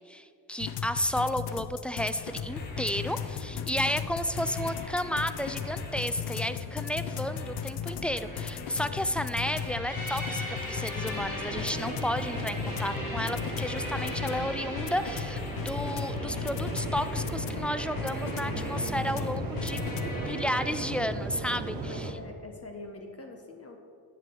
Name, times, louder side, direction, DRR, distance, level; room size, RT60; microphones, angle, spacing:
voice 1, 0.0-19.8 20.3-22.1, equal, 5° left, 11 dB, 0.3 m, -32 dB
sound 1, 0.6-20.1, left 8 dB, 75° left, 0.7 m, -37 dB
sound 2, 2.0-20.9, left 1 dB, 55° left, 2.7 m, -40 dB
Waves surf, 11.5-22.1, right 3 dB, 85° right, 1.3 m, -37 dB
voice 2, 19.9-20.3 21.8-23.8, left 3 dB, 35° left, 4 dB, 1.1 m, -44 dB
10.5 x 7.5 x 4.6 m, 2.5 s
cardioid pair, 80°, 41 cm